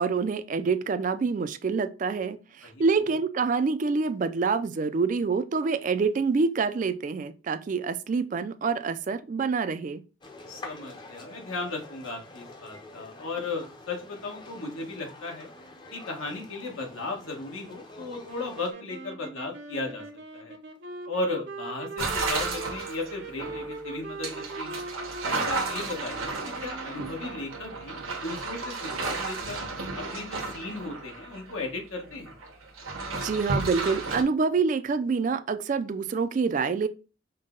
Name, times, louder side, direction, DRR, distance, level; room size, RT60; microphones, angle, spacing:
voice 1, 0.0-10.0 33.1-36.9, right 4 dB, 40° right, 0.3 m, -26 dB
voice 2, 2.6-3.1 10.5-15.5 15.9-20.0 20.3-20.5 21.1-24.8 25.3-26.4 26.6-29.6 29.9-32.3, left 3 dB, 85° left, 1.4 m, -36 dB
sound 1, 10.2-18.7, left 2 dB, 20° left, 0.6 m, -47 dB
sound 2, 18.2-28.2, right 3 dB, 55° right, 0.7 m, -41 dB
sound 3, 22.0-31.7 32.0-34.2, right 3 dB, 85° right, 1.0 m, -33 dB
5.3 x 2.1 x 3.7 m
head